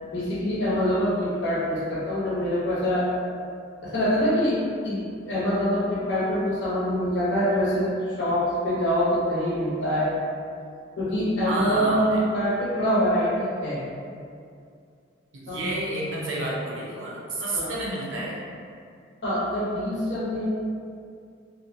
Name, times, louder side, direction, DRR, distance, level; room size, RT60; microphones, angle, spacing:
voice 1, 0.0-3.1 3.8-4.6 4.8-7.9 8.2-10.1 11.0-13.8 15.5-15.7 17.5-17.7 19.2-20.5, equal, 60° left, -7 dB, 0.7 m, -25 dB
voice 2, 11.4-12.2 15.3-18.4, right 1 dB, 80° right, -5 dB, 0.6 m, -30 dB
2.6 x 2.1 x 2.6 m, 2.3 s
head